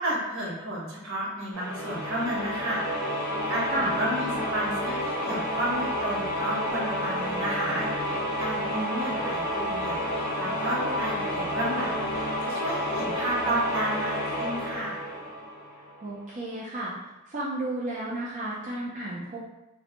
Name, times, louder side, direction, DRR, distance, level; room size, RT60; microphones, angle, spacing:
voice 1, 0.0-15.0, right 1 dB, 65° right, -4 dB, 0.9 m, -32 dB
sound 1, 1.5-16.1, equal, 45° left, 0.6 m, -30 dB
voice 2, 8.7-9.1 16.0-16.9 17.3-19.4, right 2 dB, 35° right, -6 dB, 0.4 m, -32 dB
2.5 x 2.1 x 2.9 m, 0.96 s
head